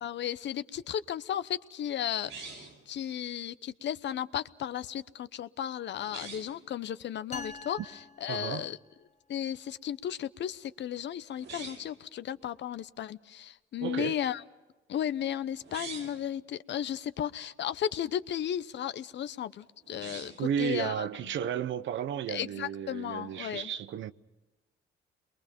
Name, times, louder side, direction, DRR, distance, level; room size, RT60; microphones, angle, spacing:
voice 1, 0.0-7.8 8.2-8.8 9.3-14.4 14.9-21.1 22.3-23.7, left 10 dB, 65° left, 0.9 m, -35 dB
sound 1, 2.2-2.9 6.0-6.6 11.3-12.0 15.6-16.2 19.8-20.5, right 5 dB, 90° right, 6.6 m, -44 dB
sound 2, 7.3-9.1, left 3 dB, 35° left, 1.6 m, -45 dB
voice 2, 8.3-8.7 13.8-14.2 20.4-24.1, right 9 dB, 70° right, 0.9 m, -33 dB
29.0 x 22.5 x 5.3 m
cardioid pair, 90°, 20 cm